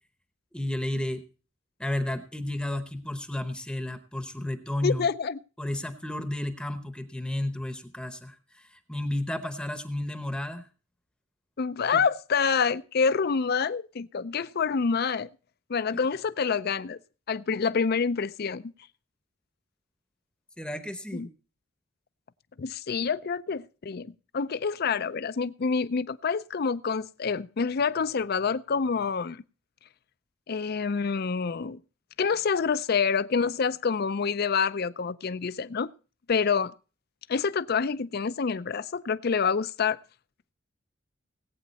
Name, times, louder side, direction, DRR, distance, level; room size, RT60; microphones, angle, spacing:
voice 1, 0.5-1.2 1.8-5.1 5.6-10.7 11.9-12.0 20.6-21.3, left 1 dB, 5° left, 0.9 m, -32 dB
voice 2, 4.8-5.4 11.6-15.3 15.7-17.0 17.3-18.7 21.1-21.3 22.6-29.4 30.5-31.8 32.2-35.9 36.3-36.7 37.3-40.0, left 5 dB, 55° left, 0.5 m, -27 dB
18.0 x 8.6 x 4.1 m
head